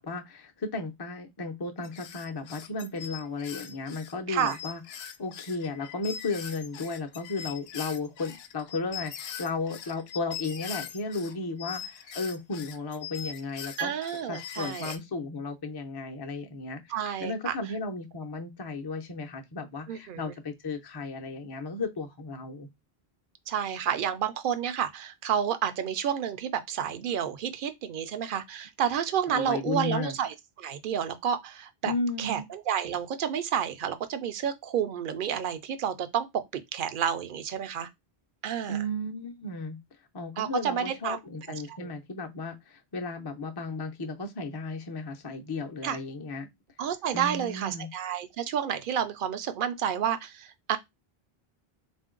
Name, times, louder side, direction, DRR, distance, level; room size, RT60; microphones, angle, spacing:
voice 1, 0.0-4.8 5.2-13.9 14.3-16.9 17.2-22.7 29.3-30.2 31.8-32.4 38.7-39.8 40.1-46.5 47.1-47.9, left 3 dB, 35° left, 0.4 m, -34 dB
sound 1, 1.8-11.3 11.6-15.0, left 8 dB, 75° left, 0.8 m, -41 dB
voice 2, 13.8-14.9 16.9-17.5 19.9-20.3 23.5-31.9 32.2-37.9 38.4-38.8 40.4-41.2 41.5-41.9 45.8-46.0 46.8-50.8, right 8 dB, 60° right, 0.7 m, -30 dB
3.7 x 2.6 x 3.7 m
omnidirectional pair, 1.1 m